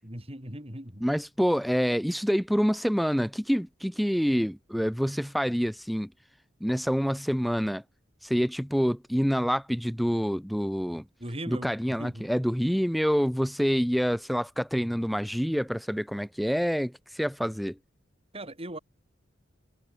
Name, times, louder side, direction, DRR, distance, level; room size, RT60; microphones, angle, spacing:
voice 1, 0.0-1.1 11.2-11.7 12.0-12.3 18.3-18.8, right 1 dB, 30° right, 7.9 m, -38 dB
voice 2, 1.0-6.1 6.6-7.8 8.2-11.0 11.5-17.8, equal, ahead, 1.3 m, -27 dB
head